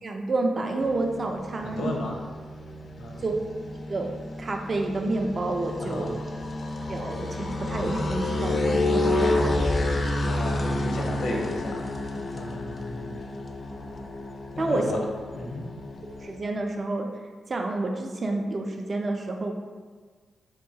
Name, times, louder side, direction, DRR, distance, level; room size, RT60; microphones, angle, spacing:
voice 1, 0.0-1.9 3.2-3.3 3.9-4.1 4.4-6.2 6.9-9.7 14.6-14.8 16.2-17.1 17.5-19.5, right 2 dB, 40° right, 3 dB, 0.4 m, -29 dB
sound 1, 0.8-16.4, left 2 dB, 40° left, 0.3 m, -30 dB
voice 2, 1.6-2.2 3.0-3.3 5.8-6.1 10.2-11.8 12.1-13.2 14.6-15.0 15.3-15.7, left 1 dB, 85° left, -1 dB, 0.6 m, -33 dB
3.6 x 3.1 x 2.7 m, 1.5 s
wide cardioid pair, 110°, 0 cm